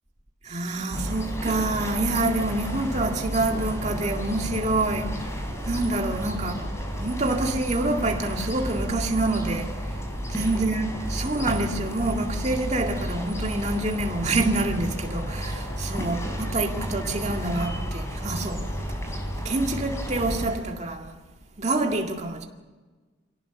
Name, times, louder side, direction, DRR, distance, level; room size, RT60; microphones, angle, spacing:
voice 1, 0.4-6.7 7.0-10.0 10.3-18.7 19.4-21.2 21.6-22.5, right 2 dB, 35° right, 2.1 m, -27 dB
sound 1, 0.9-20.6, equal, 15° left, 3.8 m, -31 dB
25.0 x 17.5 x 7.0 m
head